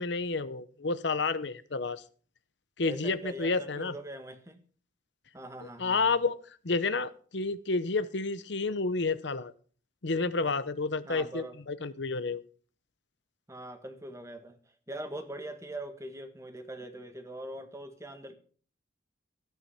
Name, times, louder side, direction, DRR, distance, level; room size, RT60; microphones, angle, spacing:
voice 1, 0.0-2.0 2.8-3.9 5.8-6.4 6.6-9.5 10.0-12.4, left 3 dB, 65° left, 13 dB, 0.9 m, -30 dB
voice 2, 2.8-4.6 5.3-6.0 11.0-11.6 13.5-14.6 14.9-18.4, right 1 dB, 15° right, 8 dB, 1.6 m, -42 dB
14.5 x 9.3 x 5.7 m, 0.43 s
head